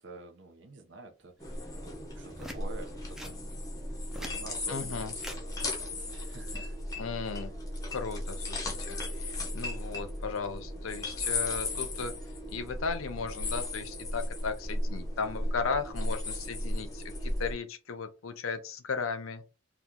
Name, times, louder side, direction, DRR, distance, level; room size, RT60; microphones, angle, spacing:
voice 1, 0.0-1.7 2.1-3.5 4.1-6.8, right 3 dB, 60° right, 0.7 m, -48 dB
sound 1, 1.4-17.5, left 1 dB, 15° left, 0.7 m, -36 dB
sound 2, 2.3-2.6 3.1-3.4 3.9-4.4 5.2-5.4 6.7-7.0, equal, ahead, 0.4 m, -43 dB
voice 2, 4.7-5.1 7.0-7.5 7.9-12.1 12.5-19.4, left 5 dB, 85° left, 0.6 m, -36 dB
2.9 x 2.4 x 3.6 m
head